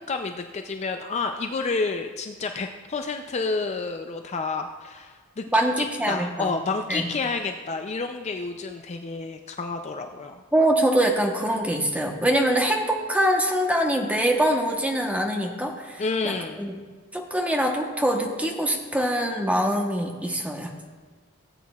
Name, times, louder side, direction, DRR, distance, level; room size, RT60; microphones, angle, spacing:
voice 1, 0.0-5.4 5.8-10.4 16.0-16.6, left 4 dB, 30° left, 5 dB, 0.4 m, -30 dB
voice 2, 5.5-6.5 6.9-7.1 10.5-16.7 17.1-20.7, right 1 dB, 5° right, 2 dB, 1.0 m, -24 dB
17.0 x 8.4 x 2.4 m, 1.5 s
head